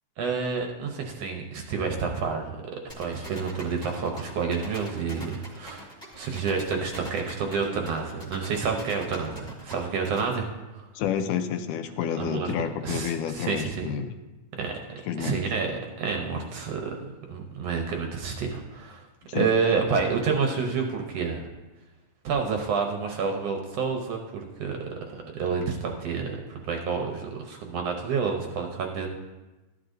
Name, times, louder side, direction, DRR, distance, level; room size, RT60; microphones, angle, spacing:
voice 1, 0.2-5.9 6.1-10.5 10.7-10.9 12.2-12.5 12.8-13.8 14.6-14.7 15.2-15.7 16.0-16.9 17.3-19.0 19.3-21.5 22.2-29.1, right 5 dB, 70° right, 3 dB, 1.6 m, -29 dB
sound 1, 2.9-10.2, equal, ahead, 1.4 m, -42 dB
voice 2, 11.0-14.1 15.1-15.4 19.3-19.5, left 8 dB, 85° left, 8 dB, 2.2 m, -29 dB
13.5 x 10.0 x 2.6 m, 1.1 s
omnidirectional pair, 3.7 m